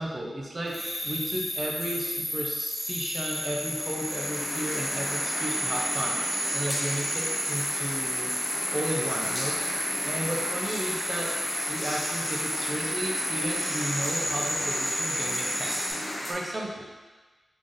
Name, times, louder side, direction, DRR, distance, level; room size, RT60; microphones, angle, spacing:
voice 1, 0.0-8.4 8.7-9.6 10.0-11.3 11.7-15.9 16.2-16.9, right 1 dB, 40° right, -1 dB, 0.6 m, -34 dB
sound 1, 0.7-15.9, equal, 15° left, 1.2 m, -32 dB
sound 2, 3.6-16.3, left 1 dB, 35° left, 1.0 m, -34 dB
3.3 x 2.6 x 3.7 m, 1.2 s
wide cardioid pair, 70°, 0 cm